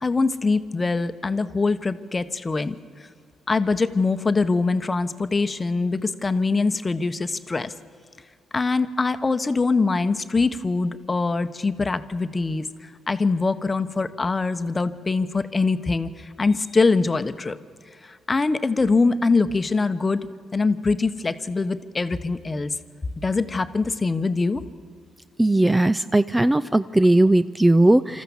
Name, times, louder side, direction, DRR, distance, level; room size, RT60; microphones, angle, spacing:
voice 1, 0.0-2.8 3.5-7.7 8.5-17.6 18.0-22.7 23.2-24.6, left 3 dB, 25° left, 11 dB, 0.9 m, -23 dB
voice 2, 25.4-28.2, right 1 dB, 10° right, 14 dB, 0.4 m, -18 dB
26.5 x 14.0 x 7.1 m, 2.2 s
cardioid pair, 90°, 0 cm